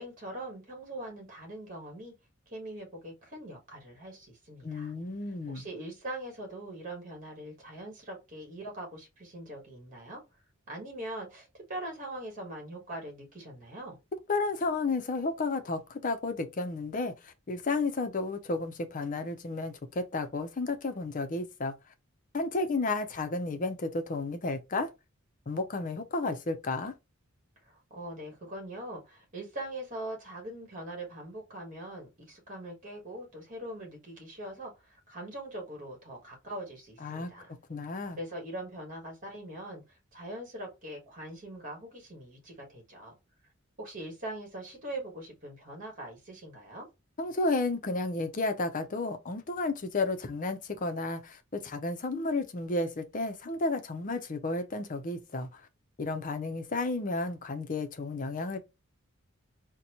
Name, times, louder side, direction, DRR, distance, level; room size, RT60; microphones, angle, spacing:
voice 1, 0.0-2.1 2.5-4.9 5.5-10.2 10.7-14.0 27.6-37.5 38.2-39.8 40.1-43.1 43.8-46.9, right 1 dB, 40° right, 1.5 m, -42 dB
voice 2, 4.6-5.7 14.3-21.7 22.3-24.9 25.5-26.9 37.0-38.2 47.2-55.6 56.0-58.6, left 3 dB, 40° left, 0.6 m, -32 dB
4.0 x 2.2 x 2.9 m
head